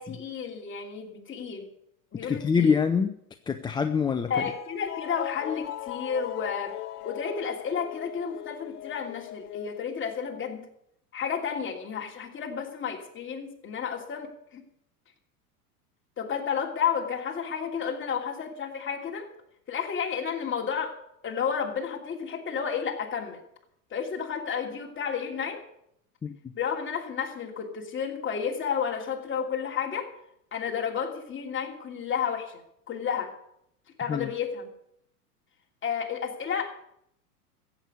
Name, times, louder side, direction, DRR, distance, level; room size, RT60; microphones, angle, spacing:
voice 1, 0.0-1.7 2.1-2.8 4.3-6.7 7.0-10.6 11.1-14.6 16.2-19.3 19.7-21.0 21.2-23.4 23.9-25.6 26.5-30.1 30.5-32.6 32.9-33.3 34.0-34.7 35.8-36.9, left 7 dB, 25° left, 1 dB, 2.9 m, -31 dB
voice 2, 2.2-3.2 3.5-4.5 26.2-26.5 34.1-34.3, left 6 dB, 10° left, 7 dB, 0.5 m, -25 dB
sound 1, 4.4-9.9, left 13 dB, 75° left, 1.0 m, -39 dB
15.0 x 8.4 x 8.1 m, 0.75 s
hypercardioid pair, 100°, 46 cm